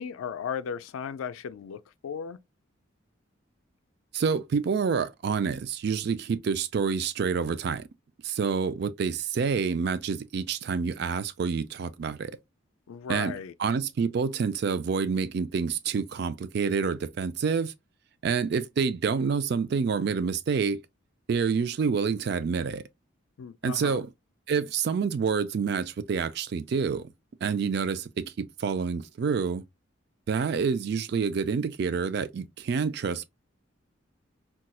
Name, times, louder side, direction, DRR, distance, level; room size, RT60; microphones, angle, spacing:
voice 1, 0.0-2.4 12.9-13.5 23.4-24.0, left 7 dB, 90° left, 0.3 m, -36 dB
voice 2, 4.1-7.9 8.2-12.3 13.1-17.7 18.2-20.8 21.3-22.8 23.6-24.1 24.5-27.1 27.4-29.6 30.3-33.2, right 5 dB, 55° right, 0.3 m, -28 dB
4.1 x 2.3 x 2.3 m
head